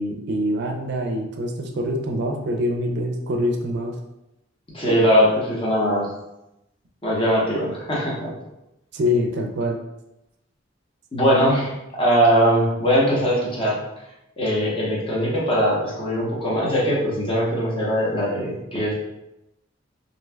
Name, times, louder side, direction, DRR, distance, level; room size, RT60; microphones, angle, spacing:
voice 1, 0.0-3.9 8.9-9.8, left 1 dB, 60° right, 3 dB, 0.4 m, -25 dB
voice 2, 4.7-6.1 7.0-8.3 11.1-13.8 14.4-18.9, equal, 30° left, -5 dB, 0.8 m, -21 dB
2.5 x 2.2 x 3.2 m, 0.89 s
head